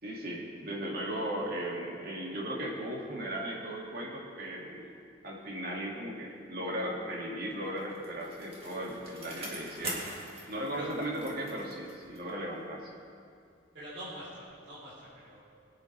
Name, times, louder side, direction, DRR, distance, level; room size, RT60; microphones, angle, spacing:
voice 1, 0.0-4.9 5.2-10.0 10.5-12.9, right 1 dB, 50° right, -2 dB, 2.1 m, -37 dB
Bicycle, 7.5-12.4 12.8-12.9, right 1 dB, 30° right, 2.0 m, -44 dB
voice 2, 10.4-10.9 13.7-15.4, right 1 dB, 70° right, -10 dB, 3.5 m, -45 dB
21.5 x 8.7 x 3.3 m, 2.4 s
head